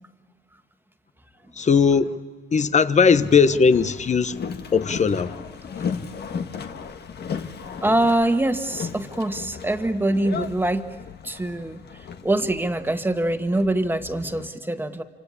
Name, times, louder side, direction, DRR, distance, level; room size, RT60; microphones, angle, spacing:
voice 1, 1.6-2.2 2.5-4.4 4.7-5.4, left 5 dB, 35° left, 1.1 m, -18 dB
Boat Water vehicle, 3.1-14.5, left 6 dB, 55° left, 1.7 m, -35 dB
voice 2, 7.8-10.9 11.2-15.0, right 1 dB, 10° right, 1.7 m, -24 dB
27.0 x 25.5 x 8.5 m
cardioid pair, 90°, 20 cm